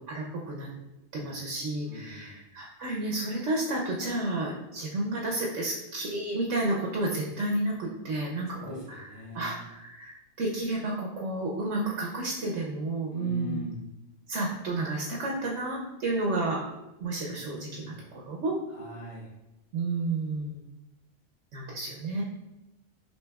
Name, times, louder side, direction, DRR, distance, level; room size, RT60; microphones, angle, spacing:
voice 1, 0.1-0.7 1.1-13.6 14.3-16.6 17.0-18.6 19.7-20.6 21.5-22.2, right 2 dB, 75° right, -2 dB, 1.0 m, -31 dB
voice 2, 1.9-2.3 8.5-9.6 13.1-13.9 18.7-19.3, left 2 dB, 30° left, -4 dB, 0.8 m, -41 dB
6.1 x 2.9 x 2.3 m, 0.96 s
omnidirectional pair, 1.3 m